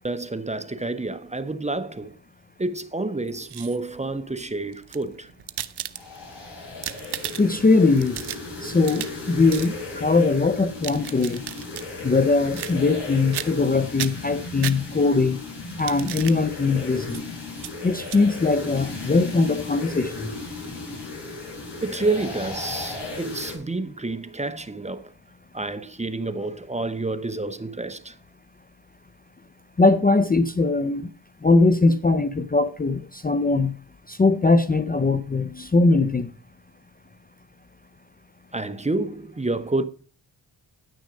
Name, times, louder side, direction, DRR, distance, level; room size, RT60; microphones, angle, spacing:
voice 1, 0.0-2.2 2.6-5.3 21.8-25.1 25.5-28.1 38.5-39.8, right 2 dB, 15° right, 0.8 m, -29 dB
sound 1, 3.3-4.0 4.7-6.3 6.7-7.6 8.0-9.2 9.5-9.7 10.6-11.9 12.5-13.0 13.3-13.7 14.0-15.2 15.7-16.4 17.1-17.2 17.6-17.7 18.0-18.2, right 11 dB, 60° right, 0.7 m, -35 dB
sound 2, 5.9-23.6, left 3 dB, 65° left, 4.8 m, -36 dB
voice 2, 7.4-8.2 8.6-11.4 12.0-15.4 15.8-17.2 17.8-20.3 29.8-31.1 31.4-33.7 34.1-36.3, left 3 dB, 20° left, 0.6 m, -21 dB
9.8 x 6.2 x 5.2 m
cardioid pair, 60°, 46 cm